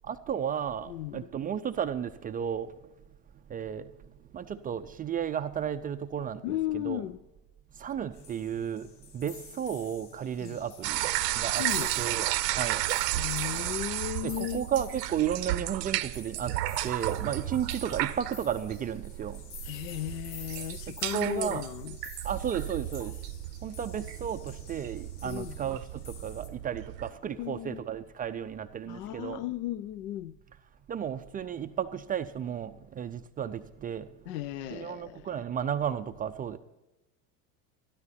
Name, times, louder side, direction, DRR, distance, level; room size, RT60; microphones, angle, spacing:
voice 1, 0.0-2.7 3.5-3.9 4.3-7.0 7.8-8.9 9.1-11.0 11.4-11.6 12.0-12.8 14.2-16.5 16.8-19.4 21.1-21.6 22.2-23.1 23.6-29.4 30.9-34.1 34.7-36.6, right 8 dB, 20° right, 0.3 m, -33 dB
voice 2, 0.9-1.3 6.4-7.2 10.4-10.6 11.6-11.9 13.2-14.7 19.7-22.0 25.2-25.6 27.4-27.8 28.9-30.4 34.3-35.4, left 14 dB, 80° left, 0.6 m, -35 dB
sound 1, 8.1-26.5, left 6 dB, 40° left, 3.2 m, -50 dB
sound 2, 10.8-27.1, right 15 dB, 85° right, 0.8 m, -33 dB
12.5 x 12.0 x 4.2 m
hypercardioid pair, 100°, 48 cm